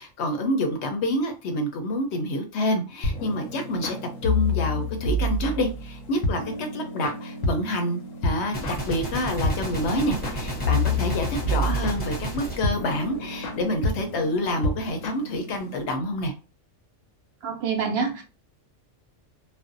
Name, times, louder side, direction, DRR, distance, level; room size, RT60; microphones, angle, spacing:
voice 1, 0.0-4.0 4.2-16.3, left 1 dB, 65° left, 0.8 m, -27 dB
sound 1, 3.0-15.8, left 2 dB, 90° left, 1.0 m, -29 dB
Gunshot gunfire, 8.5-13.8, right 1 dB, 10° left, 0.7 m, -32 dB
voice 2, 17.4-18.2, right 5 dB, 65° right, 0.7 m, -26 dB
2.5 x 2.0 x 2.5 m
omnidirectional pair, 1.3 m